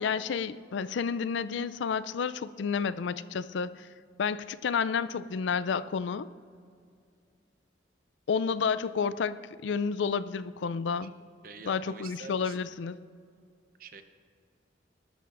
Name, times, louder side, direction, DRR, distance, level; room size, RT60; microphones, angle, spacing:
voice 1, 0.0-3.9 4.2-6.3 8.3-11.1 11.7-13.0, left 6 dB, 75° left, 15 dB, 0.4 m, -30 dB
voice 2, 11.4-12.7 13.8-14.0, right 5 dB, 50° right, 8 dB, 0.7 m, -47 dB
19.5 x 12.5 x 2.5 m, 2.3 s
head